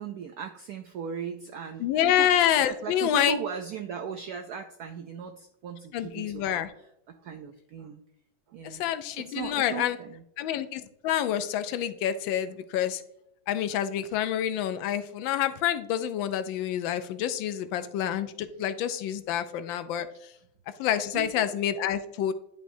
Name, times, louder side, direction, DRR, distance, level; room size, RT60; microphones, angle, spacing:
voice 1, 0.0-2.3 2.6-6.6 7.1-8.0 8.5-8.8 9.2-10.2 21.1-21.5, right 7 dB, 80° right, 6 dB, 0.8 m, -38 dB
voice 2, 1.8-3.4 5.9-6.7 8.6-10.0 10.4-13.0 13.5-20.1 20.8-22.3, left 10 dB, 80° left, 11 dB, 1.3 m, -27 dB
10.0 x 5.3 x 2.7 m, 0.76 s
omnidirectional pair, 2.1 m